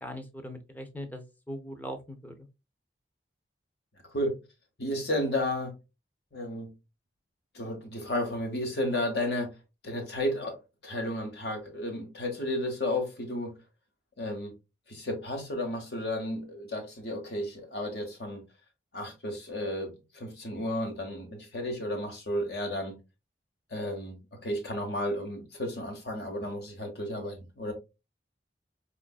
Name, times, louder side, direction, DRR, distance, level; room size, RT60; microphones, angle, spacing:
voice 1, 0.0-2.3, equal, 10° left, 0.5 m, -40 dB
voice 2, 4.8-5.7 6.3-6.7 7.5-9.5 9.8-10.6 10.8-13.6 14.2-14.5 14.9-18.4 18.9-23.0 23.7-24.2 24.4-27.7, left 1 dB, 65° left, 1.1 m, -33 dB
4.6 x 2.4 x 2.3 m
head